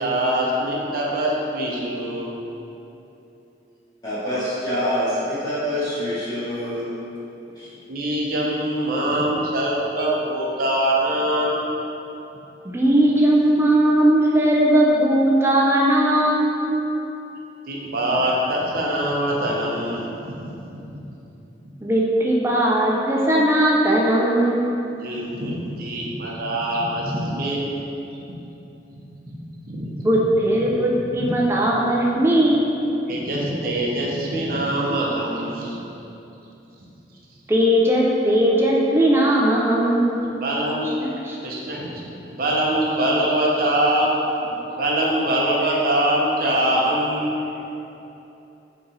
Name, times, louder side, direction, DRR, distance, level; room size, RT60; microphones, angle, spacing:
voice 1, 0.0-2.3 7.9-11.7 17.7-21.0 25.0-27.7 28.1-28.3 29.3-29.4 29.7-30.1 31.1-31.3 33.1-35.8 40.4-40.9 41.4-44.1 44.4-47.3, right 1 dB, 55° right, -3 dB, 0.6 m, -23 dB
voice 2, 4.0-7.0 7.6-7.7, equal, 25° left, -12 dB, 0.8 m, -26 dB
voice 3, 12.6-16.8 21.8-24.7 30.0-32.7 37.5-40.2 41.0-41.4, right 1 dB, 15° right, -3 dB, 0.4 m, -18 dB
4.0 x 3.0 x 3.7 m, 2.9 s
head